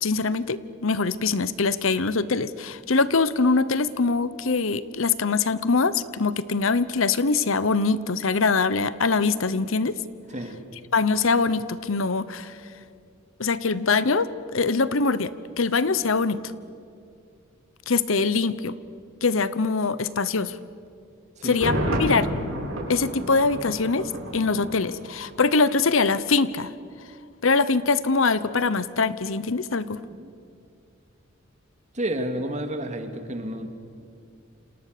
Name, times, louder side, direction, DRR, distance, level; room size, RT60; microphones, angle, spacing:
voice 1, 0.0-10.0 10.9-12.6 13.4-16.4 17.9-18.7 19.2-20.6 21.4-22.3 22.9-26.7 27.4-30.0, left 4 dB, 70° left, 16 dB, 1.0 m, -23 dB
Thunder, 21.4-25.4 25.6-25.7, equal, 90° right, 8.0 m, -30 dB
voice 2, 31.9-33.7, right 1 dB, 35° right, 6 dB, 2.6 m, -30 dB
29.5 x 27.5 x 6.8 m, 2.4 s
head